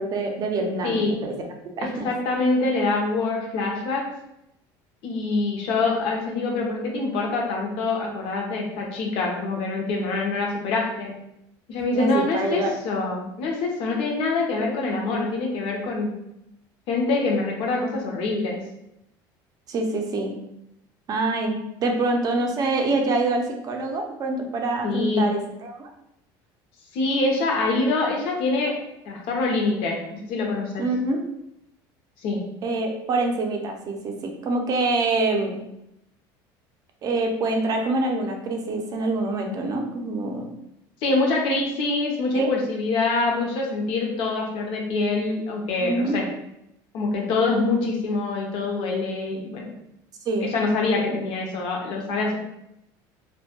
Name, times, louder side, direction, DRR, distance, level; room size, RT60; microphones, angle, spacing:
voice 1, 0.0-1.4 1.8-2.1 11.9-12.7 19.7-20.3 21.1-25.9 30.8-31.2 32.6-35.6 37.0-40.5 42.3-42.5 45.8-46.2 50.3-50.5, right 2 dB, 35° right, 3 dB, 0.5 m, -25 dB
voice 2, 1.8-4.1 5.0-11.1 11.7-16.1 16.9-18.6 24.8-25.3 26.9-30.8 32.2-32.4 41.0-46.3 46.9-49.7 50.4-52.4, left 3 dB, 60° left, 0 dB, 0.6 m, -25 dB
2.2 x 2.1 x 2.8 m, 0.83 s
cardioid pair, 125°, 10 cm